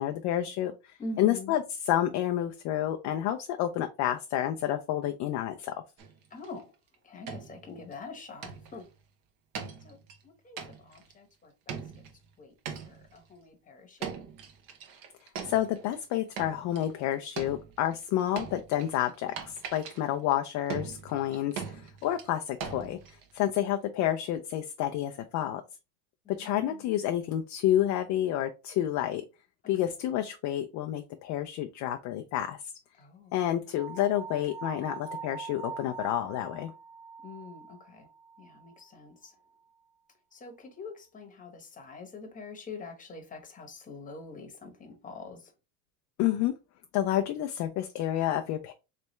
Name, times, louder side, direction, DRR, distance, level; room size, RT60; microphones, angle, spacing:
voice 1, 0.0-5.7 15.4-23.0 23.3-25.6 26.3-29.2 29.7-32.7 33.3-36.7 46.2-46.5 46.9-48.7, left 12 dB, 40° left, 0.4 m, -29 dB
voice 2, 1.0-1.5 6.3-6.7 7.0-8.9 9.8-12.0 12.4-12.5 12.8-14.2 23.4-23.7 26.2-27.1 29.8-29.9 33.0-33.5 37.2-38.1 38.4-39.3 40.3-45.5, left 3 dB, 15° left, 1.0 m, -45 dB
sound 1, 6.0-6.6 6.9-7.0 7.3-7.9 8.4-8.9 9.5-10.2 10.6-11.1 11.7-12.2 12.6-13.2 14.0-16.0 16.4-17.0 17.4-23.5, right 6 dB, 45° right, 1.1 m, -41 dB
sound 2, 33.7-38.8, right 6 dB, 80° left, 1.1 m, -43 dB
3.3 x 3.2 x 3.1 m
supercardioid pair, 125°, 45 cm